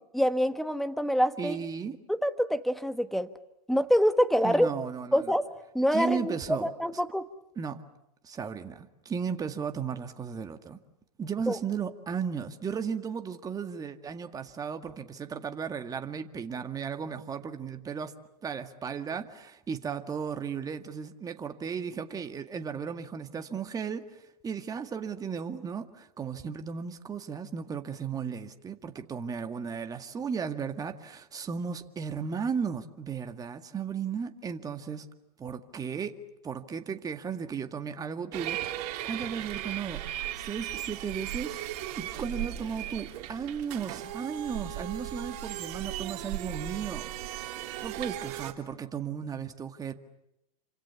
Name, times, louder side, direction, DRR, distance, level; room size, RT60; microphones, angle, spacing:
voice 1, 0.1-1.6 2.1-3.3 3.7-4.7 5.1-7.3 11.5-11.6, equal, ahead, 1.4 m, -26 dB
voice 2, 1.4-2.0 4.4-5.3 5.9-6.7 7.6-7.8 8.2-10.8 11.2-18.1 18.4-24.0 24.4-35.1 35.4-36.2 36.4-40.0 40.4-41.6 42.0-47.1 47.8-49.9, right 6 dB, 20° right, 2.0 m, -35 dB
sound 1, 38.3-48.5, right 13 dB, 50° right, 3.4 m, -37 dB
28.5 x 26.5 x 7.1 m
hypercardioid pair, 115°, 20 cm